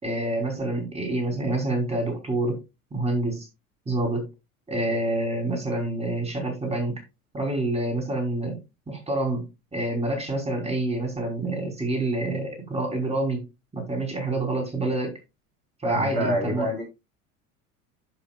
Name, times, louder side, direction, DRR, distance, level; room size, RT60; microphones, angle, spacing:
voice 1, 0.0-2.6 2.9-3.5 3.9-4.2 4.7-7.0 7.3-8.6 8.9-9.4 9.7-13.5 13.7-15.1 15.8-16.7, right 2 dB, 15° right, 3.5 m, -27 dB
voice 2, 15.9-16.9, equal, 80° right, 4.1 m, -27 dB
13.5 x 5.4 x 2.3 m
figure-of-eight pair, 75°, 44 cm